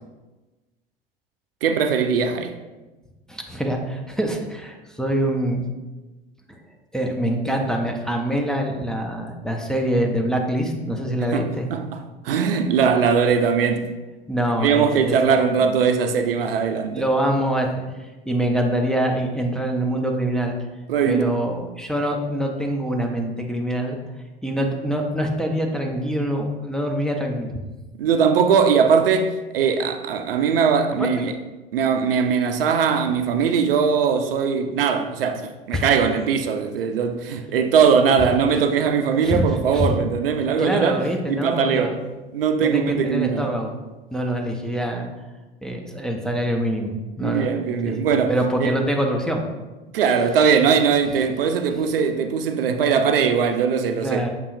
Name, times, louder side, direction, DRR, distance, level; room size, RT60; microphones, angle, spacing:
voice 1, 1.6-2.5 11.3-13.9 14.6-17.0 20.9-21.4 28.0-31.3 31.7-42.0 42.3-43.4 47.2-48.4 48.6-48.8 49.9-54.2, right 6 dB, 70° right, 0.4 m, -20 dB
voice 2, 3.3-5.7 6.9-11.7 14.3-15.4 16.7-17.7 18.3-20.5 21.1-24.0 24.4-27.5 31.0-31.3 35.7-35.9 39.2-39.9 40.6-42.0 42.6-43.7 44.1-45.1 45.6-47.5 47.9-49.4 54.0-54.3, right 1 dB, ahead, 0.5 m, -25 dB
6.8 x 2.9 x 2.5 m
figure-of-eight pair, 70°, 29 cm